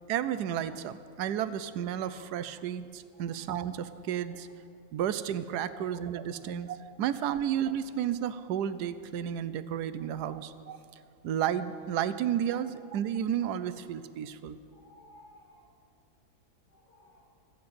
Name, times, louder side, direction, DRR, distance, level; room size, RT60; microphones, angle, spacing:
voice 1, 0.1-4.5 4.9-10.8 11.2-14.6, right 10 dB, 90° right, 13 dB, 1.2 m, -32 dB
voice 2, 14.7-15.7 16.7-17.2, left 2 dB, 75° left, -4 dB, 3.2 m, -57 dB
15.0 x 6.8 x 9.5 m, 2.4 s
omnidirectional pair, 1.7 m